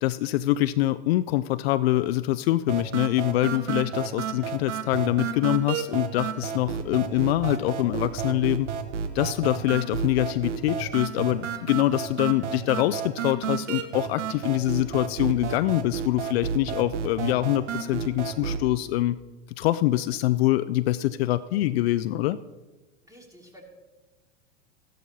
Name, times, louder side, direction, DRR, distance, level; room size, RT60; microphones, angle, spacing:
voice 1, 0.0-8.7 9.1-19.2 19.6-22.4, left 15 dB, 60° left, 14 dB, 0.5 m, -24 dB
sound 1, 2.7-18.7, right 7 dB, 80° right, 1.1 m, -31 dB
voice 2, 3.0-3.4 23.0-23.6, equal, 10° right, -1 dB, 2.7 m, -51 dB
14.5 x 11.5 x 2.8 m, 1.2 s
hypercardioid pair, 100°, 35 cm